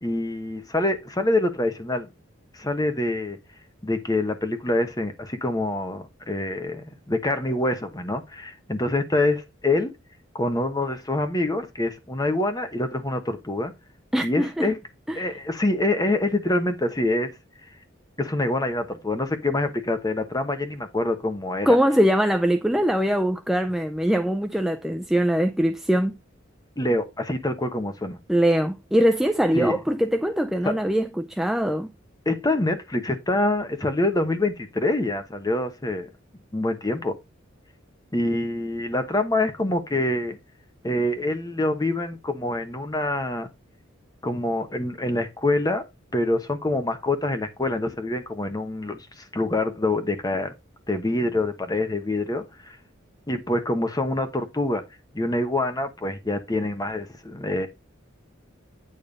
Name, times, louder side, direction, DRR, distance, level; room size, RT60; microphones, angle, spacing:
voice 1, 0.0-2.1 2.5-3.4 3.8-9.9 10.3-13.7 14.2-14.8 15.1-17.3 18.2-21.8 26.8-28.2 29.5-29.8 30.6-30.8 32.2-36.1 36.5-37.2 38.1-40.4 40.8-43.5 44.2-45.9 46.1-50.5 50.9-52.8 53.3-54.8 55.1-57.7, left 2 dB, 20° left, 1.1 m, -25 dB
voice 2, 14.1-14.7 15.1-15.3 21.6-26.1 28.3-31.9, equal, ahead, 0.4 m, -22 dB
8.9 x 3.3 x 5.2 m
head